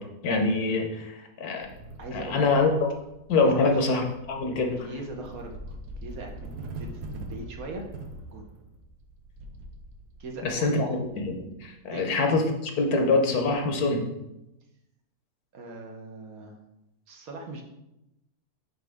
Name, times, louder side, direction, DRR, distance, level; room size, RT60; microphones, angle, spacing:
voice 1, 0.0-1.7 2.1-2.7 3.3-4.9 10.4-14.1, left 3 dB, 75° left, 3 dB, 1.4 m, -25 dB
sound 1, 1.6-11.8, right 2 dB, 85° right, 1.3 m, -43 dB
voice 2, 2.0-2.5 3.4-3.8 4.8-7.9 8.3-8.5 10.2-10.7 11.9-12.1 15.5-16.6 17.1-17.6, right 2 dB, 65° right, 2 dB, 1.4 m, -40 dB
6.2 x 4.9 x 3.5 m, 0.89 s
omnidirectional pair, 1.6 m